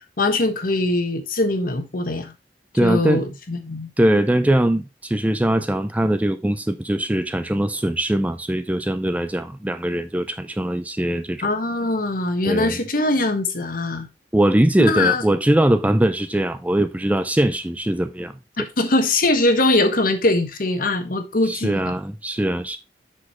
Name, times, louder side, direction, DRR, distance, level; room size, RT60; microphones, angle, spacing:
voice 1, 0.2-2.3 2.8-3.9 11.4-14.1 14.8-15.2 18.8-21.9, left 2 dB, 55° left, 1.3 m, -21 dB
voice 2, 2.7-3.2 4.0-11.5 12.4-12.8 14.3-18.3 21.5-22.8, right 1 dB, 10° right, 0.4 m, -21 dB
7.5 x 6.3 x 3.1 m
head